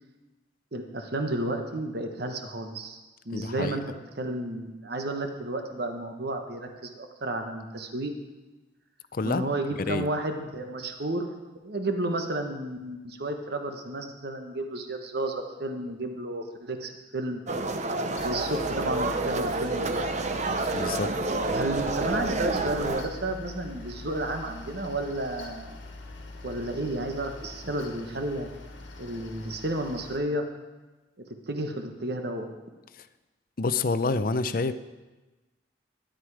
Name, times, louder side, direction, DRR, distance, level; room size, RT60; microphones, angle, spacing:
voice 1, 0.7-3.0 3.2-3.8 4.2-8.1 9.2-11.3 11.6-17.4 18.2-20.1 21.5-25.8 26.4-28.5 29.0-30.4 31.5-32.4, right 1 dB, 60° right, 5 dB, 1.2 m, -32 dB
voice 2, 3.3-3.8 9.1-9.4 9.8-10.1 20.7-21.1 33.6-34.7, left 3 dB, 50° left, 13 dB, 0.6 m, -28 dB
sound 1, 17.5-23.0, right 2 dB, 40° right, 0.7 m, -29 dB
Mechanical fan, 18.2-30.2, left 2 dB, 85° left, 1.6 m, -43 dB
13.0 x 10.5 x 4.8 m, 1.2 s
head